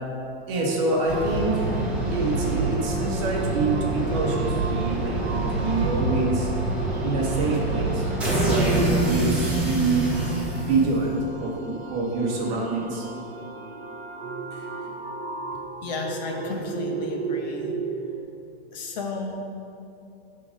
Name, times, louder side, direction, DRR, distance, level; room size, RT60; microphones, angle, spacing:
voice 1, 0.5-1.6 2.1-6.5 7.0-8.0 8.4-10.1 10.7-13.0, right 3 dB, 30° right, -1 dB, 1.1 m, -26 dB
sound 1, 0.5-18.2, right 5 dB, 90° right, 1.0 m, -35 dB
sound 2, 1.1-11.3, right 2 dB, 5° right, 1.0 m, -26 dB
voice 2, 15.8-17.7 18.7-19.3, left 3 dB, 45° left, 1 dB, 1.0 m, -32 dB
10.0 x 3.9 x 5.1 m, 2.6 s
supercardioid pair, 175°, 31 cm